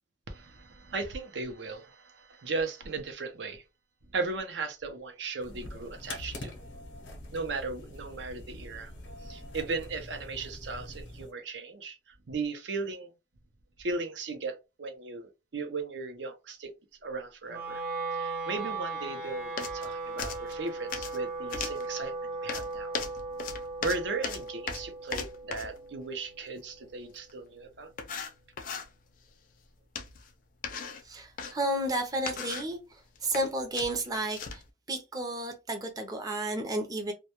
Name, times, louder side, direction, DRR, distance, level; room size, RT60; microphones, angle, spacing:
voice 1, 0.3-3.6 4.1-6.6 7.3-8.9 9.2-13.1 13.8-16.7 17.0-17.8 18.2-22.9 23.8-27.9, right 3 dB, 80° right, 0.5 m, -37 dB
sound 1, 5.4-11.3, left 1 dB, 90° left, 0.6 m, -44 dB
Wind instrument woodwind instrument, 17.5-27.7, right 3 dB, 55° right, 0.9 m, -38 dB
sound 2, 19.6-19.9 20.2-21.2 21.5-21.9 22.5-25.8 27.3-27.4 28.0-28.9 30.0-30.3 30.6-31.5 32.1-32.7 33.2-33.5 33.7-34.7, left 5 dB, 50° left, 0.4 m, -37 dB
voice 2, 31.0-34.6 34.9-37.1, right 1 dB, 20° right, 0.5 m, -32 dB
2.1 x 2.1 x 2.8 m
head